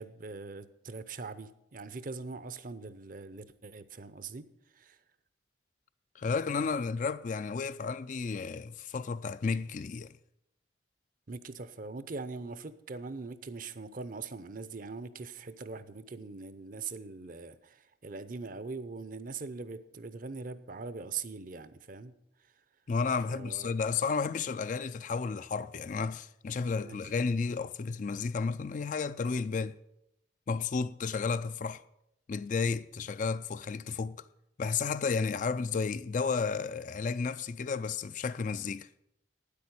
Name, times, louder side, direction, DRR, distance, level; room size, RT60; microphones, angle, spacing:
voice 1, 0.0-4.5 4.7-5.0 11.3-22.1 22.4-22.5 23.3-23.8 26.8-27.1, right 4 dB, 45° right, 0.7 m, -42 dB
voice 2, 6.2-10.1 22.9-29.8 30.5-31.8 32.3-34.2 34.6-38.9, left 5 dB, 45° left, 0.4 m, -32 dB
9.4 x 8.5 x 8.0 m
head